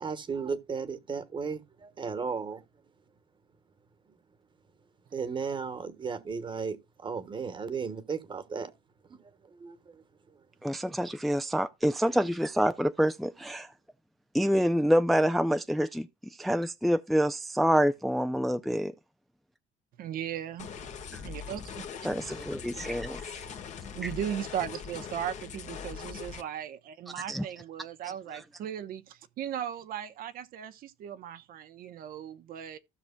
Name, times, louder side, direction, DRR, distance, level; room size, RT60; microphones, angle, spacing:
voice 1, 0.0-2.6 5.1-8.7 9.1-9.2 9.5-10.0, right 5 dB, 30° right, 1.2 m, -35 dB
voice 2, 10.6-13.7 14.3-18.9 21.1-21.2 22.0-23.3 24.0-24.1 27.3-27.4, equal, ahead, 0.4 m, -27 dB
voice 3, 20.0-20.7 21.2-21.9 23.9-32.8, right 10 dB, 65° right, 0.8 m, -37 dB
sound 1, 20.6-26.4, left 7 dB, 50° left, 1.4 m, -41 dB
15.5 x 6.0 x 2.2 m
cardioid pair, 120°, 16 cm